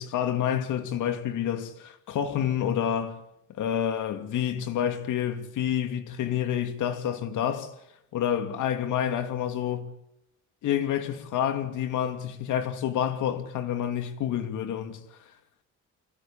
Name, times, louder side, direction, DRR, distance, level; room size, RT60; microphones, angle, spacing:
voice 1, 0.0-3.2 3.6-7.7 8.1-9.9 10.6-15.0, left 9 dB, 80° left, 2.6 m, -28 dB
25.0 x 16.5 x 8.9 m
cardioid pair, 90°, 30 cm